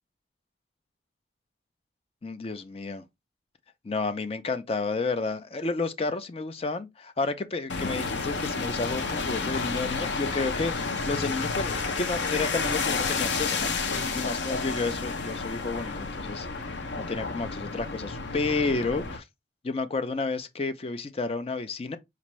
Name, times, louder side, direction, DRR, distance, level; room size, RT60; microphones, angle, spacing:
voice 1, 2.2-3.0 3.8-16.5 17.0-19.2 19.6-22.0, left 3 dB, 30° left, 0.4 m, -31 dB
sound 1, 7.7-19.2, left 4 dB, 80° left, 0.6 m, -30 dB
4.4 x 2.5 x 3.0 m
head